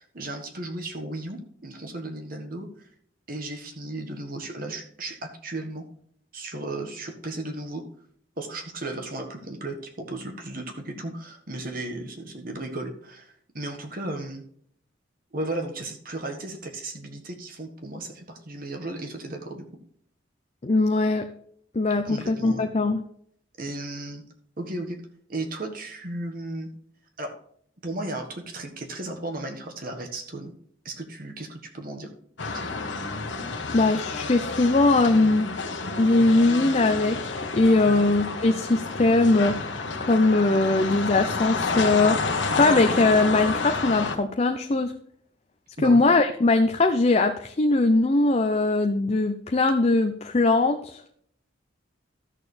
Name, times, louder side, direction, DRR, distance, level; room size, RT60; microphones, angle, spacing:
voice 1, 0.0-2.9 3.3-5.9 6.3-7.8 8.4-14.4 15.3-19.6 22.0-22.7 23.6-24.2 24.6-25.0 25.3-26.7 27.2-27.4 27.8-30.5 30.8-32.1 32.5-32.7 37.8-38.0 45.8-46.0, right 2 dB, 50° right, 4 dB, 1.5 m, -35 dB
voice 2, 20.6-21.2 21.7-23.0 33.7-35.5 36.0-44.9 45.8-51.0, left 2 dB, 35° left, 6 dB, 0.6 m, -21 dB
sound 1, 32.4-44.2, left 4 dB, 70° left, 1.2 m, -30 dB
13.5 x 6.6 x 3.3 m, 0.65 s
head